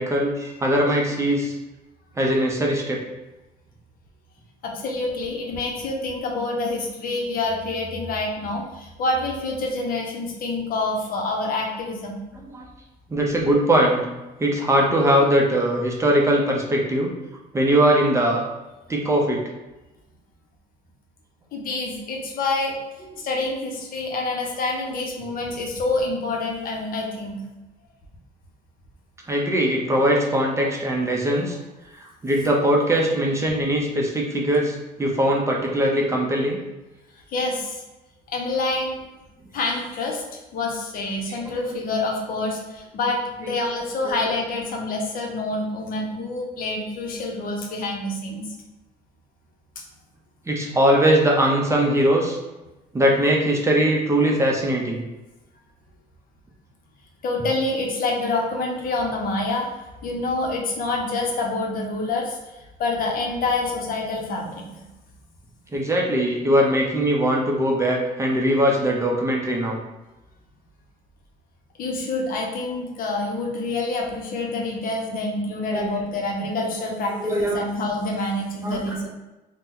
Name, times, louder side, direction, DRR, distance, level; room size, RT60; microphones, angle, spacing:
voice 1, 0.0-1.5 2.2-3.0 12.5-12.7 13.1-14.0 14.4-17.1 17.5-18.4 18.9-19.4 29.3-31.6 32.2-36.6 41.3-41.6 44.1-44.2 50.5-52.4 52.9-55.0 65.7-69.8 75.7-75.9 77.2-77.6 78.6-79.0, right 1 dB, 15° right, -1 dB, 0.6 m, -21 dB
voice 2, 4.6-12.2 21.5-22.8 23.2-27.4 37.3-37.8 38.3-39.0 39.5-40.2 40.5-48.5 57.2-59.7 60.0-62.4 62.8-64.9 71.8-79.1, left 2 dB, 55° left, 1 dB, 0.7 m, -27 dB
2.7 x 2.1 x 3.7 m, 1.0 s
cardioid pair, 110°, 17 cm